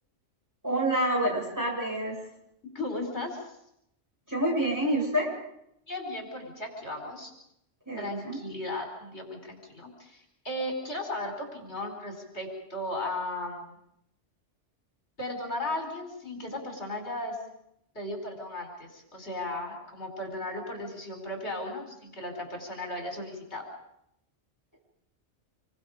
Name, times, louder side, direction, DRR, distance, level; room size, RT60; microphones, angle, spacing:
voice 1, 0.6-2.1 4.3-5.3 7.9-8.4, right 1 dB, 15° right, -3 dB, 7.7 m, -27 dB
voice 2, 2.8-3.5 5.9-7.3 8.0-13.8 15.2-17.4 18.0-23.6, left 1 dB, 65° left, 2 dB, 5.2 m, -36 dB
27.0 x 24.0 x 5.1 m, 0.79 s
omnidirectional pair, 1.2 m